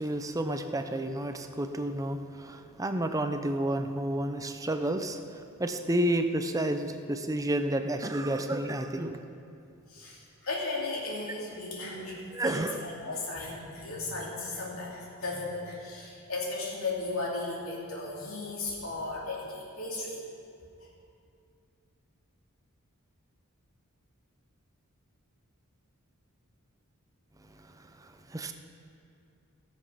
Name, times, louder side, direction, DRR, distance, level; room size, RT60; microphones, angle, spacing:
voice 1, 0.0-9.2 12.3-12.8 27.5-28.5, right 1 dB, 15° right, 7 dB, 0.6 m, -31 dB
voice 2, 9.9-20.2 20.8-20.9, left 3 dB, 70° left, -5 dB, 2.9 m, -36 dB
16.5 x 7.3 x 5.7 m, 2.5 s
head